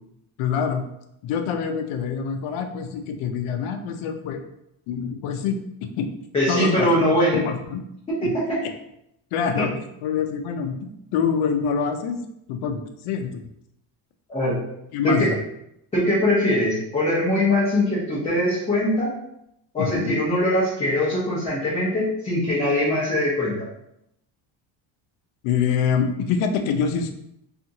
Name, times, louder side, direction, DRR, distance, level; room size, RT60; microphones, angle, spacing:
voice 1, 0.4-0.8 1.2-4.4 4.9-6.1 6.5-6.9 7.4-7.8 8.2-8.3 9.3-12.2 12.5-13.4 14.9-15.4 19.8-20.2 25.4-27.1, left 6 dB, 85° left, 5 dB, 0.6 m, -25 dB
voice 2, 6.3-7.5 9.6-9.7 14.3-14.6 15.0-15.3 15.9-19.1 19.7-23.5, left 1 dB, 15° left, -10 dB, 0.5 m, -22 dB
2.8 x 2.5 x 2.6 m, 0.79 s
cardioid pair, 160°, 49 cm